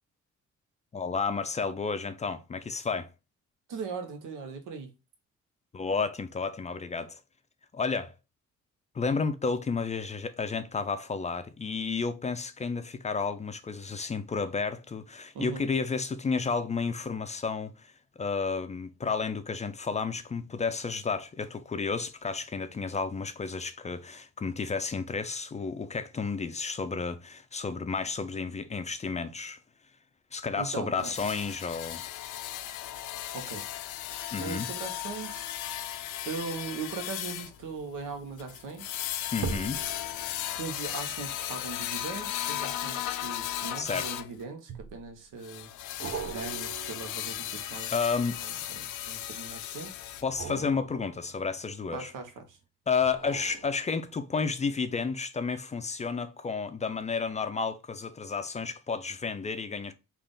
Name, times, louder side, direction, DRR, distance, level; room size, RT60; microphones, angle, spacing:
voice 1, 0.9-3.1 5.7-7.2 7.7-8.1 8.9-17.9 18.2-29.6 30.3-32.0 34.3-34.7 39.3-39.8 43.8-44.1 47.9-48.4 50.2-52.1 52.9-59.9, left 5 dB, 25° left, 0.4 m, -31 dB
voice 2, 3.7-4.9 15.3-15.7 30.6-31.1 33.3-33.6 34.4-35.4 36.2-39.0 40.6-45.7 46.2-47.9 48.4-49.9 51.9-52.6, right 5 dB, 90° right, 0.9 m, -39 dB
sound 1, 31.0-44.3 45.4-50.2, left 12 dB, 85° left, 0.5 m, -36 dB
sound 2, 39.4-44.0 44.7-45.3 46.0-49.0 50.2-52.3 53.0-54.4 54.9-55.0, right 5 dB, 55° right, 0.8 m, -43 dB
3.4 x 2.4 x 3.7 m
cardioid pair, 90°, 30 cm